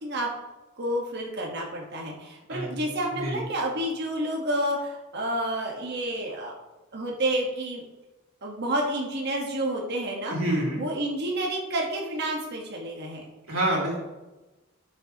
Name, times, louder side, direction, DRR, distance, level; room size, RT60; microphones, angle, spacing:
voice 1, 0.8-6.5 6.9-7.8 8.4-10.4 10.8-13.2, right 1 dB, 55° right, -1 dB, 1.3 m, -29 dB
voice 2, 2.5-3.4 10.3-10.8 13.5-14.0, right 1 dB, 85° right, -3 dB, 2.9 m, -28 dB
11.5 x 6.6 x 2.9 m, 1.1 s
head